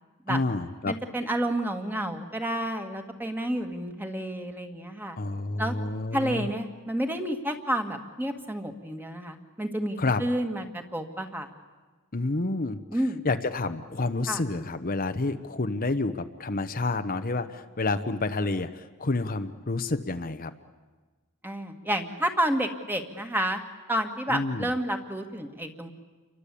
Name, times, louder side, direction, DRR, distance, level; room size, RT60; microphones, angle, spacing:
voice 1, 0.3-1.0 5.2-6.5 10.0-10.2 12.1-20.5 24.3-24.7, left 3 dB, 40° left, 8 dB, 1.0 m, -29 dB
voice 2, 0.8-5.2 5.6-5.7 6.1-11.5 12.9-13.2 14.3-14.4 21.4-23.6 23.9-25.9, right 1 dB, 10° right, 6 dB, 1.9 m, -30 dB
29.0 x 23.5 x 8.5 m, 1.3 s
head